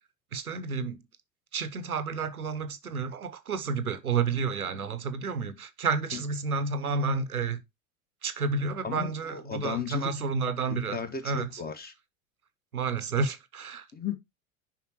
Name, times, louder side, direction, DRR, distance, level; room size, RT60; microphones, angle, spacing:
voice 1, 0.3-1.0 1.5-7.6 8.2-11.0 11.2-11.5 12.7-13.8, right 4 dB, 90° right, 1.0 m, -30 dB
voice 2, 8.8-10.1 10.7-11.9 13.9-14.1, left 6 dB, 20° left, 1.7 m, -35 dB
7.5 x 5.6 x 3.0 m
figure-of-eight pair, 85°, 42 cm